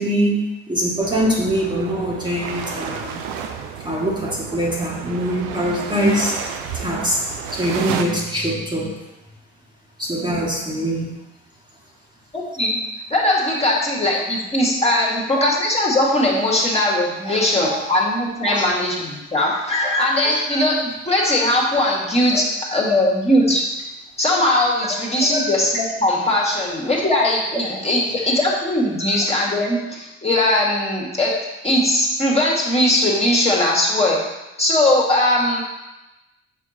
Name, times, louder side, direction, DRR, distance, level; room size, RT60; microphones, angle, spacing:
voice 1, 0.0-3.2 3.8-6.4 6.7-7.2 7.5-9.0 10.0-11.2 17.2-17.8 18.4-18.7 19.8-19.9 20.2-20.4 22.3-22.4 22.7-22.8 25.3-25.5, equal, 15° right, -4 dB, 1.6 m, -23 dB
sound 1, 1.0-8.0, right 7 dB, 85° right, 0.6 m, -31 dB
voice 2, 12.3-12.8 13.1-23.7 24.2-31.4 31.6-34.2 34.6-35.6, left 1 dB, 20° left, -3 dB, 2.0 m, -19 dB
6.5 x 4.5 x 4.2 m, 1.0 s
supercardioid pair, 65°, 30 cm